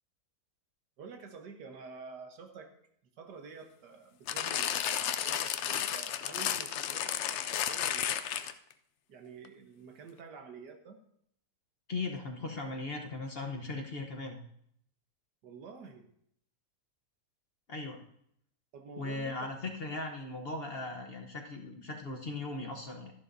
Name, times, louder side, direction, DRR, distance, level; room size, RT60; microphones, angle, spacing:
voice 1, 1.0-2.7 3.2-8.4 9.1-11.0 15.4-16.1 18.7-19.5 19.8-20.0, right 5 dB, 85° right, 5 dB, 1.7 m, -49 dB
sound 1, 4.3-8.7 9.4-9.5, left 10 dB, 90° left, 0.6 m, -33 dB
voice 2, 11.9-14.4 17.7-18.0 19.0-23.1, left 3 dB, 40° left, 2 dB, 1.0 m, -38 dB
13.0 x 11.0 x 2.7 m, 0.71 s
omnidirectional pair, 1.8 m